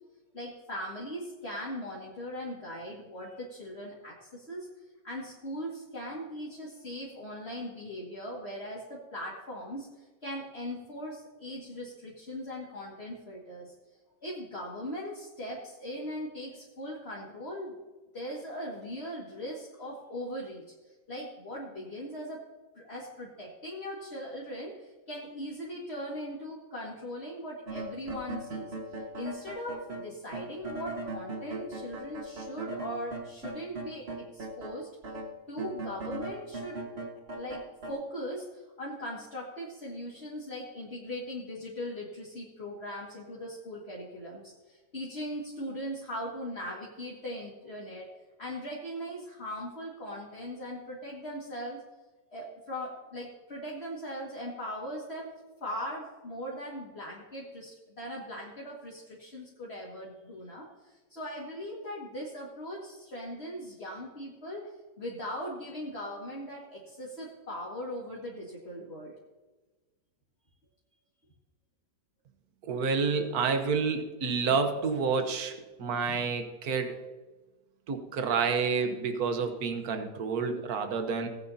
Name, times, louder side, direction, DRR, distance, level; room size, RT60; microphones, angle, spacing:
voice 1, 0.3-4.7 5.0-13.7 14.2-17.8 18.1-22.4 22.8-28.7 29.2-34.9 35.5-36.8 37.3-48.1 48.4-51.8 52.3-55.3 55.6-69.1, equal, 40° left, -5 dB, 2.2 m, -39 dB
sound 1, 27.7-34.8 35.0-37.9, right 2 dB, 40° right, 1.7 m, -39 dB
voice 2, 72.6-75.5 75.8-77.0 77.9-81.3, right 5 dB, 65° right, 6 dB, 1.6 m, -29 dB
18.0 x 9.2 x 2.8 m, 1.2 s
omnidirectional pair, 1.8 m